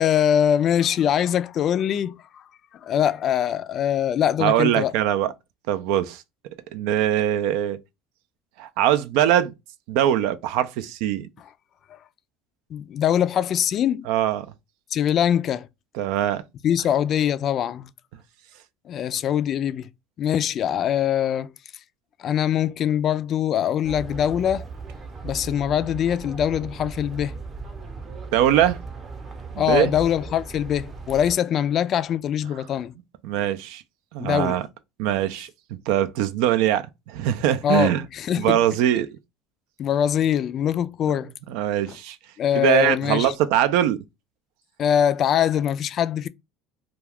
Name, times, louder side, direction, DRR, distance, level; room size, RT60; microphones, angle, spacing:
voice 1, 0.0-2.2 2.8-4.9 12.7-14.1 14.9-15.7 16.6-17.9 18.9-19.9 20.2-21.5 22.2-24.7 25.2-27.4 29.6-32.9 34.2-34.6 37.6-38.6 39.8-41.3 41.9-42.0 42.4-43.3 44.8-46.3, left 9 dB, 45° left, 0.3 m, -23 dB
voice 2, 4.4-5.3 5.7-6.2 6.7-7.8 8.6-9.5 9.9-11.3 14.1-14.5 15.9-16.4 28.3-28.8 29.5-29.9 33.2-33.8 34.1-34.6 35.0-35.5 35.9-38.0 38.4-39.1 41.5-42.2 42.5-44.0, right 11 dB, 75° right, 0.3 m, -22 dB
sound 1, 23.8-31.4, right 4 dB, 30° right, 0.7 m, -37 dB
2.3 x 2.3 x 3.4 m
supercardioid pair, 95°, 0 cm